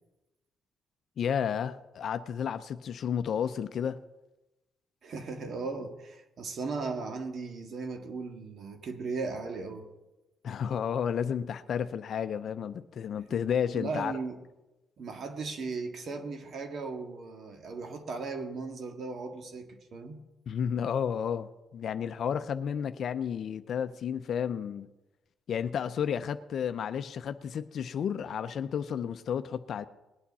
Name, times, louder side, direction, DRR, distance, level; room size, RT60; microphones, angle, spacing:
voice 1, 1.2-4.0 10.4-14.1 20.5-24.9 25.5-29.8, left 8 dB, 60° left, 0.5 m, -32 dB
voice 2, 5.0-9.9 13.7-14.4 15.0-20.2, right 4 dB, 60° right, 1.7 m, -37 dB
20.0 x 8.6 x 4.1 m
cardioid pair, 90°, 0 cm